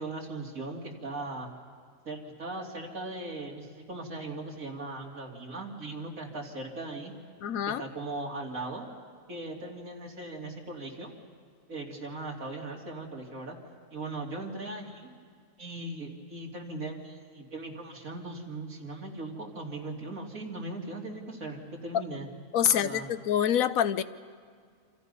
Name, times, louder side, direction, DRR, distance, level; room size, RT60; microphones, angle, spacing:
voice 1, 0.0-1.5 2.0-7.1 7.8-8.9 9.3-11.1 11.7-13.6 13.9-15.1 15.6-22.3 22.7-23.1, right 2 dB, 85° right, -1 dB, 3.3 m, -39 dB
voice 2, 7.4-7.8 22.5-24.0, left 9 dB, 85° left, 13 dB, 1.2 m, -26 dB
28.5 x 26.0 x 5.5 m, 2.1 s
omnidirectional pair, 1.4 m